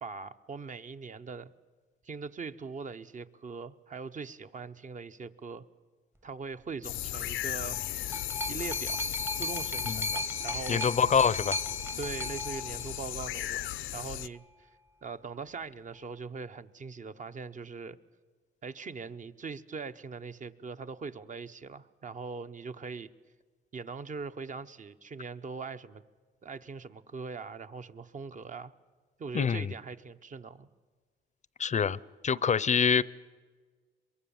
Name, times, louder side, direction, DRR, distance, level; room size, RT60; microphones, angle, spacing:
voice 1, 0.0-1.5 2.0-5.7 6.2-7.8 8.5-9.0 9.3-10.9 12.0-14.7 15.0-18.0 18.6-23.1 23.7-26.0 26.4-28.7 29.2-30.7, right 5 dB, 40° right, 11 dB, 1.0 m, -41 dB
sound 1, 6.8-14.3, left 14 dB, 80° left, 0.6 m, -36 dB
sound 2, 7.7-13.5 14.4-14.5, left 1 dB, 10° right, 0.9 m, -37 dB
voice 2, 10.7-11.6 29.3-29.7 31.6-32.0 32.2-33.0, left 6 dB, 35° left, 20 dB, 0.6 m, -25 dB
23.0 x 22.5 x 7.2 m, 1.4 s
cardioid pair, 90°, 20 cm